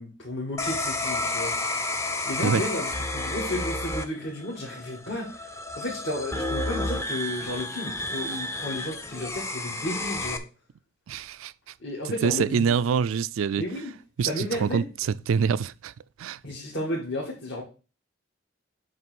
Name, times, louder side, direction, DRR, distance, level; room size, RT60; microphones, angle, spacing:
voice 1, 0.0-1.6 2.2-10.4 11.8-12.8 13.6-13.9 14.2-14.9 16.4-17.6, left 1 dB, 65° left, 1.8 m, -33 dB
sound 1, 0.6-10.4, left 2 dB, 15° left, 0.5 m, -31 dB
voice 2, 11.1-11.5 12.2-13.6 14.2-14.8 15.3-15.9 16.2-16.4, right 6 dB, 85° right, 0.3 m, -25 dB
7.5 x 3.1 x 6.0 m
head